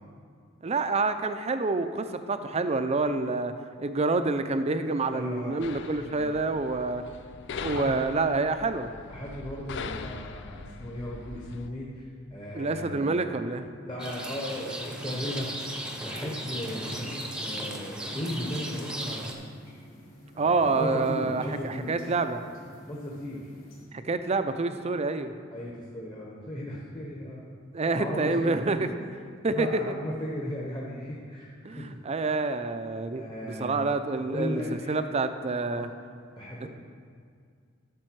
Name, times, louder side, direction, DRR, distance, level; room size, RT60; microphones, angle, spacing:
voice 1, 0.6-3.5 3.8-7.0 7.6-8.9 12.5-13.8 20.4-22.4 23.9-25.3 27.7-28.9 29.4-29.9 31.6-34.6 34.9-35.9, right 3 dB, 30° right, 9 dB, 0.5 m, -27 dB
voice 2, 5.1-5.5 6.1-6.3 7.6-7.9 9.1-13.0 13.8-15.5 16.0-19.3 20.3-21.9 22.9-23.5 25.5-27.5 27.9-28.9 29.5-31.9 33.1-33.8 34.3-35.0 35.6-35.8 36.4-36.7, left 1 dB, 25° left, -4 dB, 1.2 m, -36 dB
sound 1, 5.6-11.7, left 5 dB, 60° left, 0.5 m, -41 dB
Rain, 14.0-19.3, right 1 dB, 5° right, 0.8 m, -36 dB
sound 2, 16.6-23.8, equal, 80° left, 2.7 m, -51 dB
12.0 x 6.8 x 4.7 m, 2.1 s
head